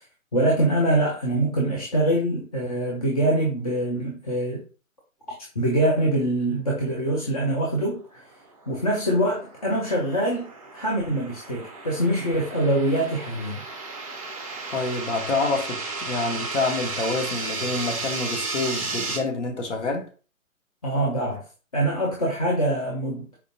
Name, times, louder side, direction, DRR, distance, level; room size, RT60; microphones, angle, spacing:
voice 1, 0.3-4.6 5.6-8.2 8.7-13.6 20.8-21.4 21.7-23.3, right 1 dB, 30° left, 0.5 m, -24 dB
sound 1, 8.7-19.2, right 3 dB, 25° right, 0.5 m, -34 dB
voice 2, 14.7-20.1, left 3 dB, 55° left, 0.9 m, -27 dB
4.4 x 2.5 x 2.5 m
figure-of-eight pair, 140°, 42 cm